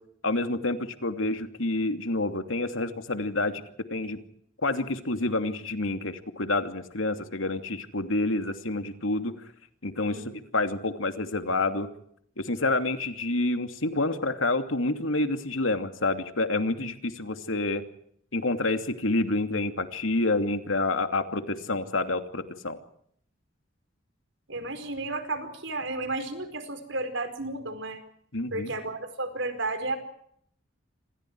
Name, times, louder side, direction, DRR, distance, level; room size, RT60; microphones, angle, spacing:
voice 1, 0.2-3.6 3.9-4.2 4.6-9.3 9.8-11.9 12.4-17.8 18.3-22.8 28.3-28.7, left 2 dB, 85° left, 7 dB, 2.8 m, -28 dB
voice 2, 24.5-28.0 28.5-30.0, right 2 dB, 70° right, 9 dB, 5.0 m, -32 dB
27.5 x 27.0 x 4.8 m, 0.68 s
head